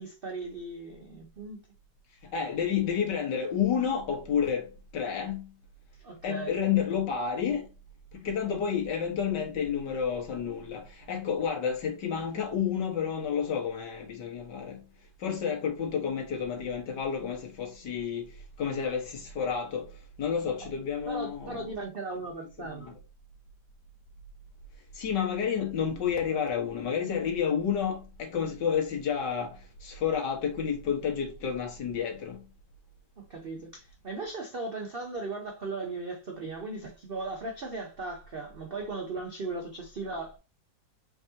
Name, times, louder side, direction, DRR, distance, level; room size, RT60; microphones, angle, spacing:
voice 1, 0.0-1.6 6.0-6.6 21.1-22.9 33.2-40.4, right 3 dB, 65° right, 0.5 m, -37 dB
voice 2, 2.3-4.7 4.9-5.5 6.2-7.7 8.2-14.8 15.2-18.3 18.6-19.9 20.2-21.7 22.6-22.9 25.0-32.4, left 7 dB, 65° left, 1.9 m, -30 dB
4.6 x 4.0 x 2.7 m
omnidirectional pair, 2.0 m